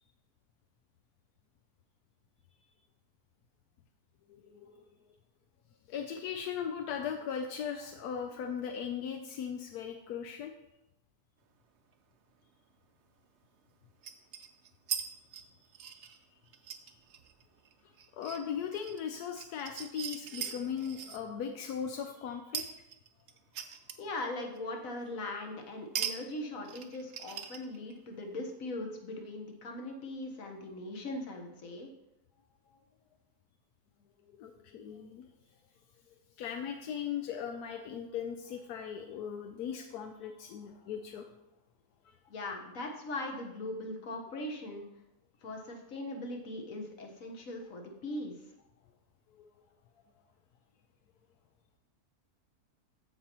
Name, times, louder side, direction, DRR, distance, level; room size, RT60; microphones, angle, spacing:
voice 1, 4.3-4.8 5.9-10.5 16.9-17.0 18.1-22.7 34.3-35.3 36.4-41.3, left 7 dB, 85° left, 5 dB, 1.1 m, -38 dB
sound 1, 11.9-12.0 14.0-15.1 15.3-21.2 22.5-24.2 24.6-24.7 25.9-26.2 26.4-28.0, right 8 dB, 60° right, 0.8 m, -40 dB
voice 2, 24.0-31.9 42.3-44.8 45.4-48.4, left 2 dB, 60° left, 2 dB, 1.6 m, -40 dB
14.5 x 5.4 x 2.9 m, 0.89 s
omnidirectional pair, 1.6 m